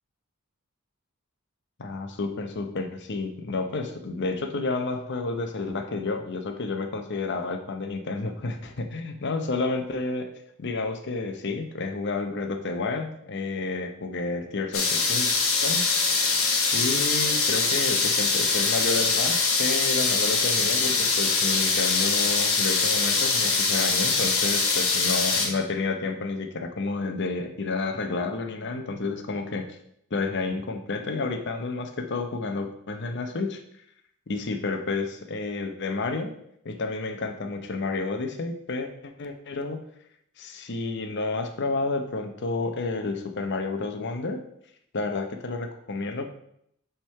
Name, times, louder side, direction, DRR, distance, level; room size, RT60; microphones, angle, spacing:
voice 1, 1.8-10.3 10.6-15.3 15.6-15.8 16.7-29.7 30.1-33.6 34.3-36.3 36.6-39.8 40.4-44.4 44.9-46.2, left 3 dB, 55° left, 6 dB, 0.7 m, -30 dB
sound 1, 14.7-25.5, left 4 dB, 70° left, 1.3 m, -23 dB
5.7 x 3.6 x 5.6 m, 0.74 s
head